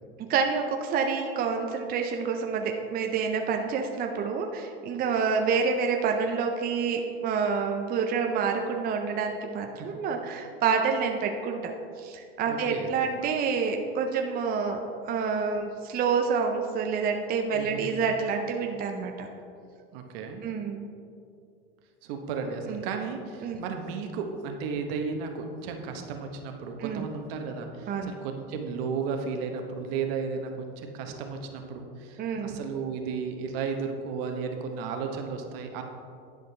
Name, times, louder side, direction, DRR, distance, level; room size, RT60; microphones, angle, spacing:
voice 1, 0.2-11.7 12.0-19.3 20.4-20.9 22.7-22.8 23.4-23.6 26.8-27.1 27.9-28.1 32.2-32.6, right 5 dB, 30° right, 3 dB, 0.6 m, -28 dB
voice 2, 12.5-12.9 17.6-18.0 19.9-20.4 22.0-35.8, right 5 dB, 70° right, 4 dB, 1.0 m, -34 dB
10.0 x 5.1 x 3.3 m, 2.4 s
supercardioid pair, 115°, 31 cm